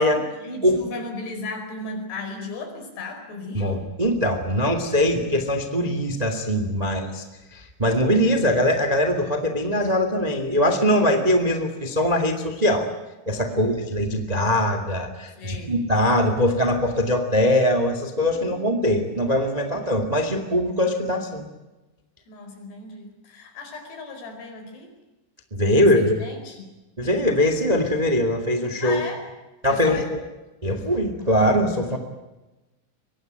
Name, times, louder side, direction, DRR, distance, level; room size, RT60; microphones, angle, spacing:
voice 1, 0.0-3.9 6.8-7.1 13.5-13.8 15.4-15.8 18.3-18.6 19.7-19.9 20.8-20.9 22.3-24.9 25.8-26.8 28.8-29.3 29.7-30.1 31.8-32.0, left 2 dB, 60° left, 5 dB, 6.8 m, -36 dB
voice 2, 3.5-7.2 7.5-12.9 13.2-21.5 25.5-26.2 27.0-29.0 29.6-30.2 30.6-32.0, left 1 dB, 35° right, 7 dB, 0.6 m, -22 dB
24.5 x 20.5 x 9.1 m, 1.1 s
omnidirectional pair, 5.4 m